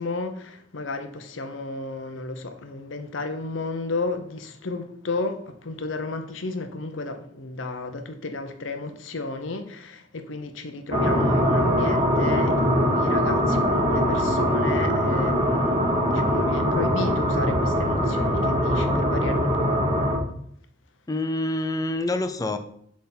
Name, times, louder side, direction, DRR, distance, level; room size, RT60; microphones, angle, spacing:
voice 1, 0.0-19.8, left 3 dB, 75° left, 0.7 m, -33 dB
sound 1, 10.9-20.2, equal, 25° right, 1.4 m, -22 dB
voice 2, 21.1-22.6, left 2 dB, 20° left, 0.5 m, -26 dB
7.5 x 3.6 x 4.3 m
head